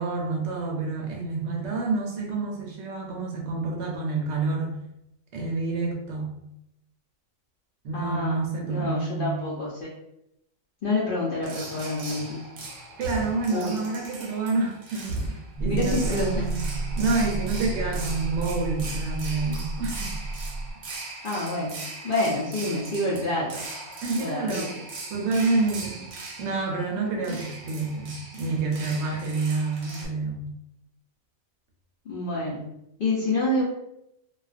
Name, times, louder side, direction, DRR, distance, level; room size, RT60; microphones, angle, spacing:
voice 1, 0.0-4.8 5.3-6.4 7.8-9.5 13.0-16.7 17.0-20.2 24.0-24.8 25.1-26.1 26.4-30.5, right 3 dB, 65° right, 0 dB, 0.7 m, -28 dB
voice 2, 7.9-9.9 10.8-12.5 13.5-13.8 15.7-16.4 21.2-21.8 22.0-23.7 24.2-24.7 27.3-27.4 32.0-32.7 33.0-33.6, left 2 dB, 60° left, -6 dB, 0.6 m, -28 dB
sound 1, 11.4-30.1, right 3 dB, 90° right, 1.0 m, -39 dB
sound 2, 15.6-20.7, right 2 dB, 85° left, 1.2 m, -31 dB
2.3 x 2.2 x 2.4 m, 0.81 s
omnidirectional pair, 1.5 m